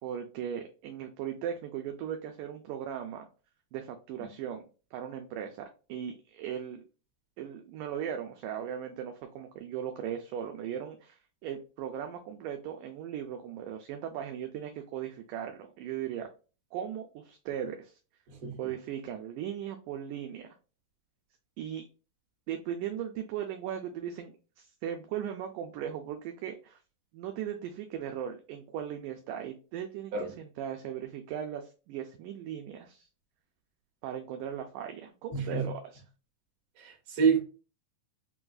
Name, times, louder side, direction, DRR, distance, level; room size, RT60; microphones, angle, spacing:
voice 1, 0.0-3.3 3.7-4.6 4.9-5.6 5.9-6.8 7.4-16.3 16.7-18.0 18.6-20.6 21.6-21.8 22.5-26.8 27.1-33.1 34.0-36.0, right 9 dB, 80° right, 1.9 m, -38 dB
voice 2, 35.3-35.7 36.8-37.4, right 6 dB, 55° right, 1.7 m, -27 dB
5.9 x 2.4 x 2.3 m
omnidirectional pair, 4.0 m